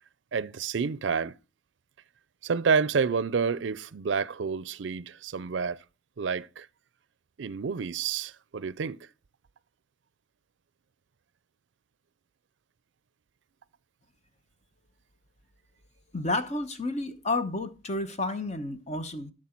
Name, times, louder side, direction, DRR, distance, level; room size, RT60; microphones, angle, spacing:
voice 1, 0.3-1.3 2.4-5.8 6.2-6.7 7.4-9.1, right 5 dB, 65° right, 0.5 m, -29 dB
voice 2, 16.1-19.3, left 2 dB, 35° left, 0.9 m, -31 dB
12.5 x 6.2 x 4.4 m
head